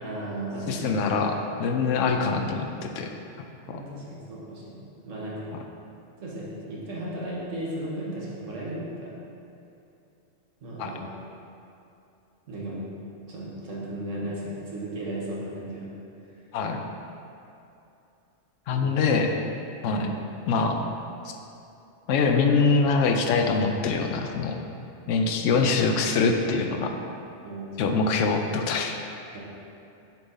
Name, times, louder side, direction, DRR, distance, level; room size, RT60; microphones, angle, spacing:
voice 1, 0.0-1.0 2.1-2.4 3.6-5.5 6.2-9.2 10.6-11.0 12.5-12.8 13.3-16.0 18.7-19.2 19.8-20.2 25.2-25.6 27.4-27.8 29.3-29.4, right 1 dB, 80° right, -6 dB, 1.6 m, -35 dB
voice 2, 0.7-2.7 3.0-3.1 10.8-10.9 16.5-16.8 18.7-19.4 19.8-20.1 20.5-20.8 21.2-21.3 22.1-24.6 25.1-26.9 27.8-29.0, left 4 dB, 80° left, 4 dB, 0.9 m, -24 dB
6.9 x 4.0 x 3.7 m, 2.7 s
omnidirectional pair, 1.3 m